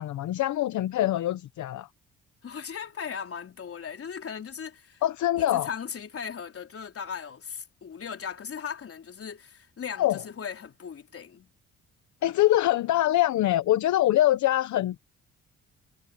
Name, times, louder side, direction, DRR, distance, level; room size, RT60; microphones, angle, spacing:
voice 1, 0.0-1.9 5.0-5.7 10.0-10.2 12.2-15.0, left 14 dB, 70° left, 0.9 m, -24 dB
voice 2, 2.4-5.0 5.4-11.5, left 7 dB, 50° left, 4.0 m, -38 dB
cardioid pair, 90°, 30 cm